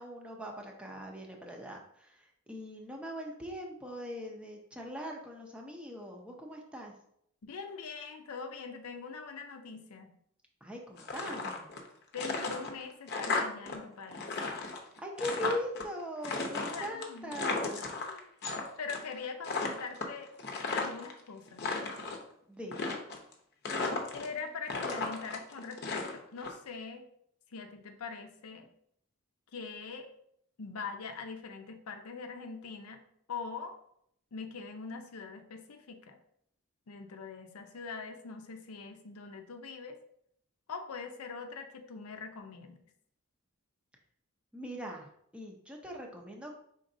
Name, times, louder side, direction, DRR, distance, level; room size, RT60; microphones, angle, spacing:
voice 1, 0.0-6.9 10.6-11.7 15.0-17.8 22.5-23.0 44.5-46.5, equal, 5° right, 1 dB, 0.5 m, -41 dB
voice 2, 7.4-10.1 12.1-14.3 16.3-16.4 16.6-17.4 17.8-18.3 18.8-20.3 20.7-21.7 24.1-27.1 27.5-28.7 29.5-30.1 30.6-33.0 33.3-33.8 34.3-36.2 36.9-40.0 40.7-42.8, left 5 dB, 90° left, 6 dB, 0.6 m, -43 dB
sound 1, 11.0-11.9 12.1-13.8 14.0-15.8 16.2-18.6 18.9-19.2 19.4-21.1 21.5-22.2 22.7-23.3 23.6-24.4 24.7-26.5, left 3 dB, 50° left, 0.7 m, -35 dB
5.1 x 3.8 x 2.6 m, 0.70 s
head